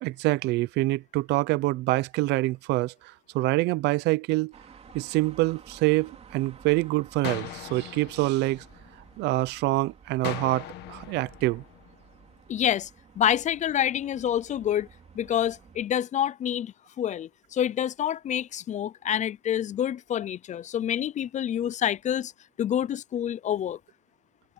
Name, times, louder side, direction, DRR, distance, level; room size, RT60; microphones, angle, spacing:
voice 1, 0.0-4.6 4.9-8.6 9.2-11.6, right 19 dB, 90° right, 0.7 m, -26 dB
sound 1, 4.5-15.9, right 6 dB, 40° right, 3.3 m, -53 dB
sound 2, 7.2-9.3 10.2-12.3, left 15 dB, 85° left, 1.5 m, -40 dB
voice 2, 12.5-12.9 13.2-14.9 15.1-22.3 22.6-23.8, left 10 dB, 45° left, 0.6 m, -27 dB
cardioid pair, 110°, 17 cm